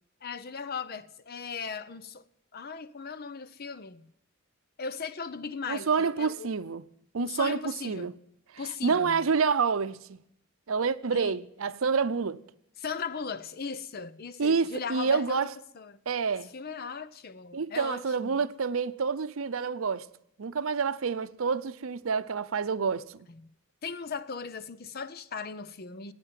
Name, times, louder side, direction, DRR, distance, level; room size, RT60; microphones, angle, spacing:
voice 1, 0.2-2.2 2.5-4.1 4.8-6.5 7.2-8.1 8.6-9.2 11.1-11.4 12.8-15.5 15.7-16.0 16.5-18.5 23.8-26.1, left 5 dB, 50° left, 0.7 m, -38 dB
voice 2, 5.7-6.8 7.1-8.1 8.8-10.2 10.7-12.4 14.4-15.5 16.1-16.5 17.5-20.1 20.4-23.2, right 5 dB, 80° right, 0.6 m, -28 dB
16.5 x 9.1 x 9.2 m
head